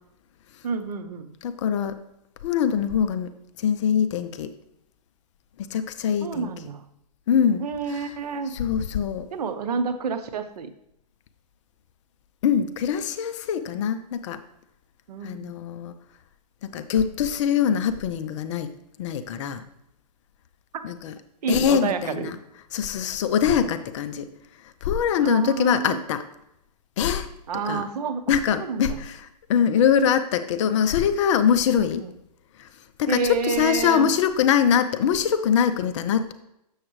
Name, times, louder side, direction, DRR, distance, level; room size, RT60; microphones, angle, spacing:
voice 1, 0.6-1.3 6.2-6.8 7.6-8.6 9.3-10.7 15.1-15.5 21.4-22.3 23.4-23.8 25.2-26.0 27.5-29.0 32.0-32.1 33.1-34.1, right 5 dB, 65° right, 9 dB, 0.8 m, -29 dB
voice 2, 1.4-2.0 2.4-3.3 3.6-4.5 5.6-6.5 7.3-8.1 8.5-9.3 12.4-14.4 15.2-15.9 16.6-18.7 19.0-19.6 20.8-21.1 21.5-22.4 22.7-24.3 24.6-26.2 27.0-27.3 27.7-27.8 28.3-32.1 32.6-32.7 33.0-36.3, left 8 dB, 45° left, 10 dB, 0.6 m, -23 dB
7.3 x 6.4 x 3.1 m, 0.81 s
hypercardioid pair, 140°, 21 cm